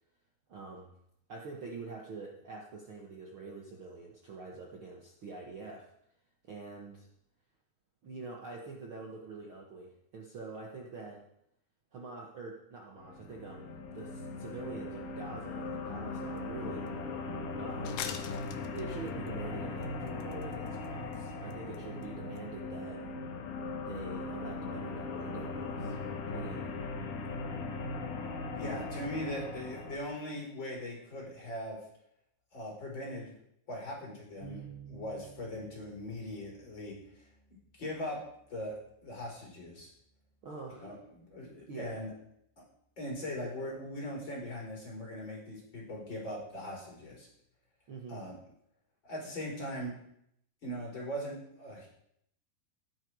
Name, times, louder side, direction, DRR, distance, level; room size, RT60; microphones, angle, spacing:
voice 1, 0.5-0.9 1.3-5.9 6.4-7.1 8.0-11.2 11.9-16.9 17.5-18.1 18.7-23.1 23.8-26.0 26.3-26.7 40.4-40.9 41.7-42.0 47.9-48.2, right 4 dB, 75° right, -1 dB, 1.1 m, -45 dB
sound 1, 13.0-30.0, left 3 dB, 60° left, 2.8 m, -39 dB
sound 2, 16.4-16.5 16.9-17.0 17.9-19.3 19.8-20.9 21.1-21.2 21.5-21.8 22.0-22.1 22.4-22.5, left 9 dB, 75° left, 3.0 m, -42 dB
voice 2, 28.5-31.8 32.5-33.3 33.7-36.9 37.8-38.2 38.5-38.7 39.0-39.9 40.8-42.1 42.6-42.7 43.0-47.3 48.1-48.4 49.0-50.0 50.6-51.9, left 1 dB, 25° left, -2 dB, 4.9 m, -40 dB
Bass guitar, 34.4-44.1, right 9 dB, 35° right, 8.3 m, -57 dB
16.0 x 11.5 x 4.8 m, 0.74 s
omnidirectional pair, 5.0 m